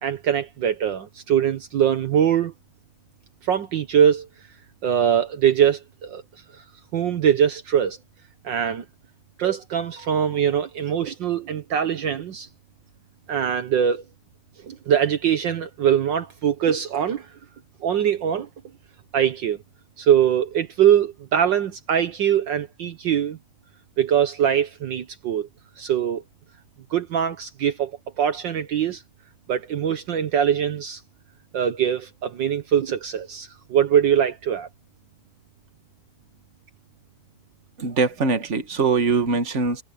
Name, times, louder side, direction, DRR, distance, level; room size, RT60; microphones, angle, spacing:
voice 1, 0.0-2.5 3.4-4.3 4.8-6.2 6.9-8.0 8.4-8.8 9.4-12.5 13.3-14.0 14.7-17.3 17.8-18.5 19.1-19.6 20.0-23.4 24.0-25.5 25.8-26.2 26.9-27.9 28.2-29.0 29.5-31.0 31.5-34.7, right 9 dB, 65° right, 1.7 m, -22 dB
voice 2, 37.8-39.8, right 4 dB, 35° right, 2.0 m, -22 dB
omnidirectional pair, 2.2 m